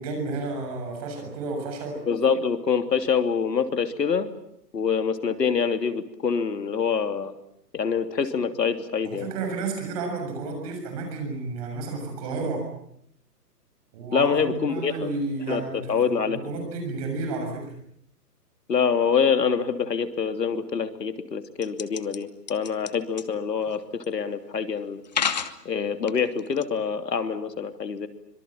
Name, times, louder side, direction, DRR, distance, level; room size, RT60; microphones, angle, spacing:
voice 1, 0.0-2.0 9.0-12.7 13.9-17.7, right 3 dB, 20° right, 3 dB, 7.0 m, -31 dB
voice 2, 2.1-4.3 4.7-7.3 7.7-9.3 14.1-15.1 15.5-16.4 18.7-25.0 25.6-28.1, left 6 dB, 85° left, 9 dB, 3.2 m, -25 dB
sound 1, 21.6-22.2 22.5-22.9 23.2-23.3 24.0-24.1 25.0-25.5 26.1-26.6, left 7 dB, 25° left, 1.0 m, -28 dB
25.5 x 23.5 x 9.0 m, 0.73 s
hypercardioid pair, 175°, 48 cm